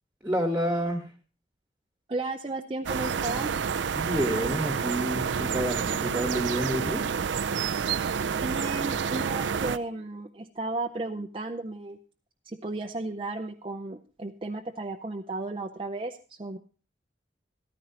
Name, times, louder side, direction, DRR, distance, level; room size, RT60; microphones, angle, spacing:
voice 1, 0.2-1.0 3.9-7.0, equal, 10° right, 3 dB, 1.3 m, -29 dB
voice 2, 2.1-3.5 8.2-12.0 12.5-16.6, right 2 dB, 30° right, 3 dB, 0.6 m, -34 dB
sound 1, 2.9-9.8, right 6 dB, 80° right, 0.5 m, -29 dB
14.5 x 13.0 x 2.8 m, 0.36 s
head